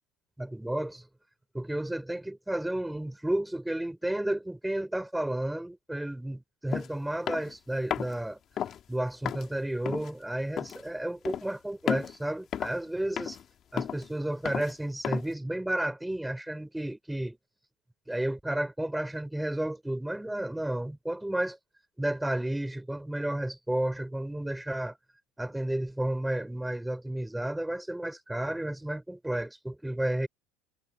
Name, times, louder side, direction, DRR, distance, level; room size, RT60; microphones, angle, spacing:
voice 1, 0.4-1.0 1.5-8.4 8.9-13.4 13.7-17.4 18.1-21.6 22.0-25.0 25.4-30.3, right 1 dB, 5° right, 4.2 m, -32 dB
sound 1, 6.7-6.9 7.3-7.5 7.9-8.2 8.6-8.8 9.2-9.5 9.9-10.1 10.6-10.8 11.2-11.5 11.9-12.2 12.5-12.9 13.2-13.4 13.8-14.1 14.4-14.7 15.0-15.3, left 9 dB, 45° left, 2.0 m, -33 dB
supercardioid pair, 95°, 0 cm